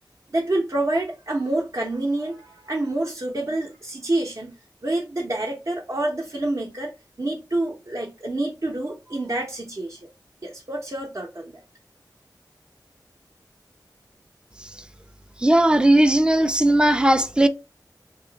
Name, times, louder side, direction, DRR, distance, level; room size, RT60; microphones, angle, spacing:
voice 1, 0.3-4.5 4.8-6.9 7.2-10.0 10.4-11.6, right 2 dB, 45° right, 0.7 m, -27 dB
voice 2, 15.4-17.5, right 1 dB, 10° right, 0.3 m, -17 dB
2.9 x 2.3 x 3.8 m
wide cardioid pair, 65°, 8 cm